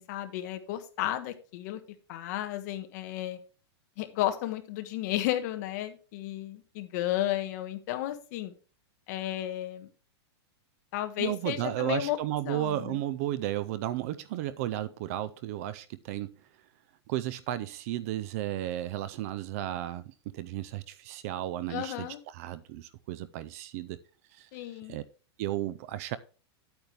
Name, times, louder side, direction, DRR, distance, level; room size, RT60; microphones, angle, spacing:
voice 1, 0.0-1.8 2.1-3.4 4.0-8.5 9.1-9.9 10.9-12.2 12.4-13.0 21.7-22.2 24.5-25.0, left 13 dB, 40° left, 1.3 m, -33 dB
voice 2, 11.2-16.3 17.1-24.0 24.3-24.5 24.9-25.0 25.4-26.2, right 13 dB, 35° right, 0.4 m, -34 dB
9.5 x 8.8 x 3.3 m
supercardioid pair, 175°, 14 cm